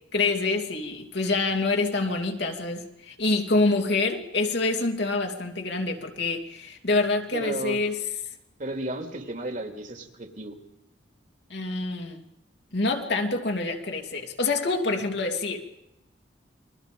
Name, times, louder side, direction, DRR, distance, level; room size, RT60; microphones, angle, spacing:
voice 1, 0.1-8.0 11.5-12.2 12.7-15.6, left 3 dB, 65° left, 3 dB, 2.9 m, -26 dB
voice 2, 7.3-7.8 8.6-10.6, right 1 dB, 45° right, 5 dB, 2.7 m, -33 dB
29.5 x 22.5 x 5.3 m, 0.90 s
head